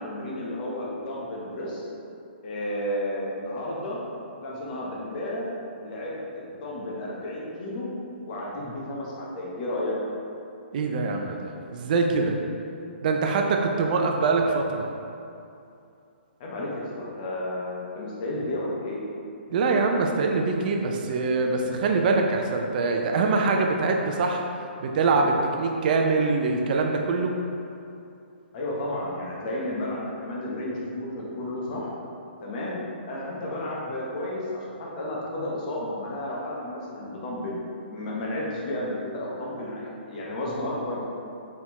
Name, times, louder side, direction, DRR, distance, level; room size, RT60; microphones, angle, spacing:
voice 1, 0.0-1.9 2.4-4.0 4.4-5.5 5.8-7.9 8.3-9.9 16.4-19.0 28.5-31.9 32.4-32.8 33.0-37.6 37.9-41.0, left 1 dB, 40° left, -5 dB, 1.0 m, -32 dB
voice 2, 10.7-12.4 13.0-14.9 19.5-24.4 24.8-27.3, right 3 dB, 45° right, 2 dB, 0.5 m, -24 dB
4.1 x 3.6 x 3.0 m, 2.6 s
hypercardioid pair, 140°, 6 cm